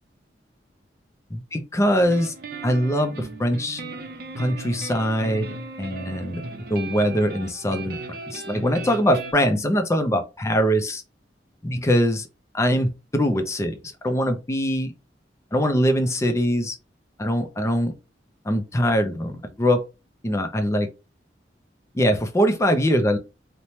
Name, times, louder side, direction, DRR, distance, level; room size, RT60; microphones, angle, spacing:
voice 1, 1.3-2.3 2.6-3.8 4.4-5.5 5.8-6.4 6.7-8.0 8.3-11.0 11.6-12.3 12.5-13.8 14.0-14.9 15.5-16.8 17.2-17.9 18.4-19.8 20.2-20.9 21.9-23.2, equal, 15° left, 0.4 m, -22 dB
sound 1, 2.0-9.3, right 2 dB, 55° right, 0.5 m, -36 dB
2.7 x 2.1 x 3.0 m
head